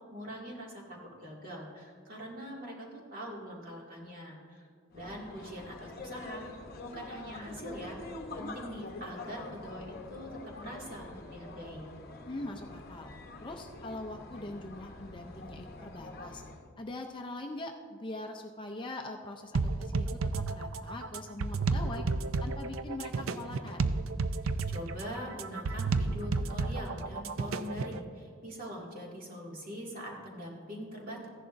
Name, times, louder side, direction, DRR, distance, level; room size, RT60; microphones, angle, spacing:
voice 1, 0.1-4.7 4.9-8.0 8.4-11.9 24.7-31.3, equal, 45° right, -3 dB, 2.2 m, -43 dB
sound 1, 4.9-16.7, left 2 dB, 45° left, 0.8 m, -45 dB
voice 2, 12.3-13.1 13.4-16.4 16.8-20.2 20.5-22.1 22.4-23.9, left 2 dB, 25° left, 4 dB, 0.5 m, -42 dB
sound 2, 19.5-28.0, right 3 dB, 80° right, 0.5 m, -32 dB
15.0 x 11.0 x 2.6 m, 2.1 s
head